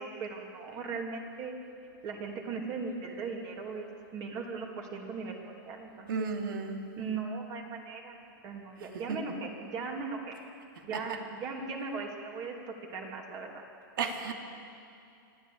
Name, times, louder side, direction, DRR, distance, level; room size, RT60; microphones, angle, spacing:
voice 1, 0.0-1.5 2.0-6.3 7.0-10.4 10.8-13.6, right 4 dB, 30° right, 1 dB, 2.8 m, -38 dB
voice 2, 6.1-6.9 9.1-9.2 10.9-11.2 14.0-14.3, right 5 dB, 70° right, 4 dB, 2.7 m, -33 dB
24.5 x 13.5 x 8.6 m, 2.5 s
hypercardioid pair, 145°, 12 cm